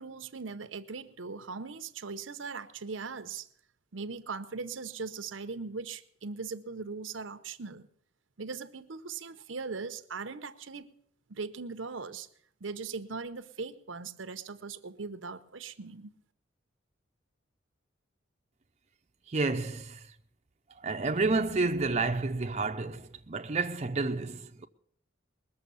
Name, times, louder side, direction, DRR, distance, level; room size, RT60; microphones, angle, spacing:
voice 1, 0.0-3.5 3.9-7.9 8.4-10.9 11.3-12.3 12.6-16.1, right 4 dB, 90° right, 0.8 m, -39 dB
voice 2, 19.3-20.1 20.7-24.7, right 3 dB, 35° right, 0.6 m, -30 dB
21.0 x 7.0 x 7.0 m
head